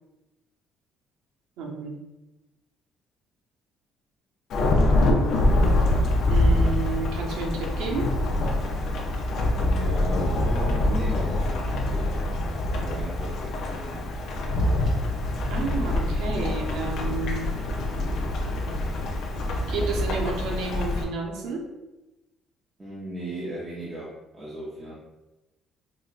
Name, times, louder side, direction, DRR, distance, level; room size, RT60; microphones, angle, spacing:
voice 1, 1.6-2.0 6.3-8.1 15.5-17.5 17.8-18.1 19.7-21.6, right 3 dB, 85° right, 0 dB, 0.7 m, -31 dB
Thunderstorm / Rain, 4.5-21.0, left 1 dB, 50° left, 0.5 m, -25 dB
voice 2, 9.5-11.6 11.9-14.1 22.8-24.9, right 1 dB, 15° right, -8 dB, 0.6 m, -37 dB
4.9 x 2.2 x 2.4 m, 1.0 s
cardioid pair, 180°, 0 cm